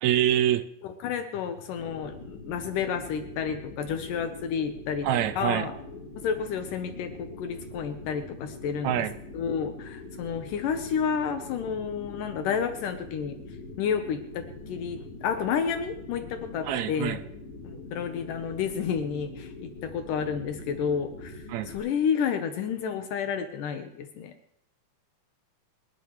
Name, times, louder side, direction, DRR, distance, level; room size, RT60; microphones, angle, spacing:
voice 1, 0.0-0.7 5.0-5.7 8.8-9.1 16.6-17.2 21.5-21.7, right 11 dB, 80° right, 1.6 m, -25 dB
voice 2, 0.8-5.1 5.4-5.7 6.2-9.1 9.3-13.4 13.8-17.2 17.6-24.3, left 7 dB, 75° left, 2.5 m, -30 dB
sound 1, 1.8-21.8, left 2 dB, 40° left, 3.7 m, -43 dB
25.0 x 12.5 x 3.1 m
omnidirectional pair, 3.9 m